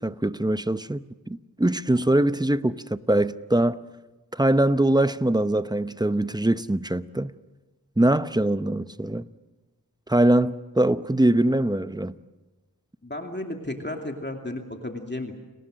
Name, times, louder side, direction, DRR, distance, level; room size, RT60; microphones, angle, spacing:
voice 1, 0.0-3.8 4.3-7.3 8.0-9.2 10.1-12.1, right 1 dB, 10° right, 0.8 m, -22 dB
voice 2, 13.0-15.4, left 1 dB, 25° left, 2.6 m, -33 dB
30.0 x 19.5 x 6.4 m
cardioid pair, 40°, 38 cm